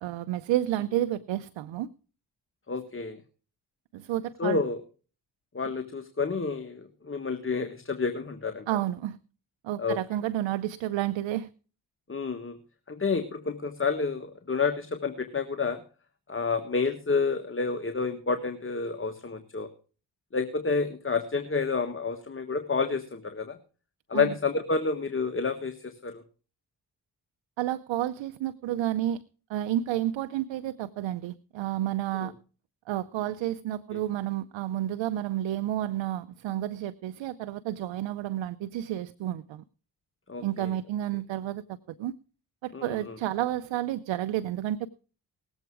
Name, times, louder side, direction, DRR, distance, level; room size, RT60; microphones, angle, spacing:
voice 1, 0.0-1.9 3.9-4.6 8.7-9.2 9.6-11.5 24.1-24.3 27.6-29.2 29.5-32.3 32.9-39.6 40.4-42.1 42.6-44.9, right 13 dB, 85° right, 0.7 m, -30 dB
voice 2, 2.7-3.2 4.4-4.8 5.5-8.6 9.8-10.0 12.1-12.6 12.9-15.8 16.3-19.7 20.3-23.6 24.1-26.2 32.2-32.3 40.3-40.7 42.7-43.1, left 4 dB, 30° left, 1.6 m, -29 dB
19.0 x 8.1 x 4.8 m
supercardioid pair, 55°, 44 cm